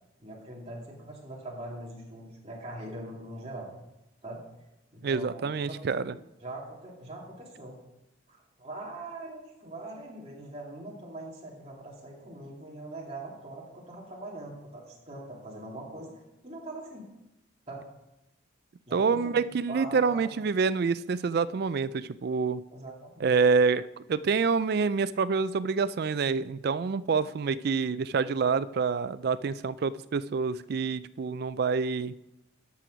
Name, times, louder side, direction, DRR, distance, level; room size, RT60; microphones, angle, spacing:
voice 1, 0.2-3.7 4.2-4.4 4.9-6.1 6.4-7.8 8.3-16.1 16.4-17.0 17.7-17.8 18.9-19.3 19.7-20.4 22.7-23.3, right 2 dB, 30° right, -3 dB, 2.4 m, -42 dB
voice 2, 5.0-6.1 18.9-22.6 23.2-32.1, right 5 dB, 50° right, 16 dB, 0.3 m, -27 dB
12.5 x 6.2 x 5.1 m, 0.93 s
head